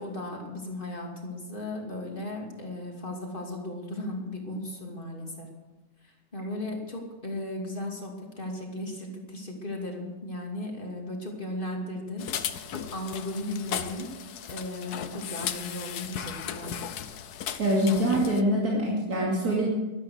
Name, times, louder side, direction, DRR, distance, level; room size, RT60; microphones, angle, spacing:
voice 1, 0.0-5.5 6.3-16.8, left 1 dB, 35° left, 0 dB, 2.9 m, -36 dB
sound 1, 12.2-18.4, left 9 dB, 90° left, 1.4 m, -36 dB
voice 2, 17.6-19.7, equal, 80° right, -4 dB, 3.2 m, -24 dB
13.0 x 13.0 x 6.5 m, 1.1 s
omnidirectional pair, 1.6 m